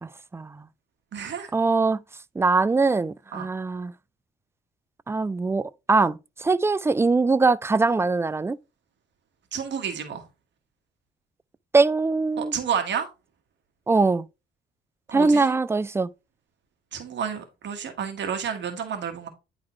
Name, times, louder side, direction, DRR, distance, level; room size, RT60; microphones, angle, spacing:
voice 1, 0.0-0.7 1.5-2.0 2.4-3.9 5.1-8.6 11.7-12.5 13.9-14.3 15.1-16.1, right 3 dB, 15° right, 0.3 m, -22 dB
voice 2, 1.1-1.5 3.3-3.5 9.5-10.2 12.4-13.1 15.1-15.5 16.9-19.3, right 7 dB, 65° right, 1.6 m, -30 dB
9.7 x 4.0 x 3.1 m
cardioid pair, 90°, 20 cm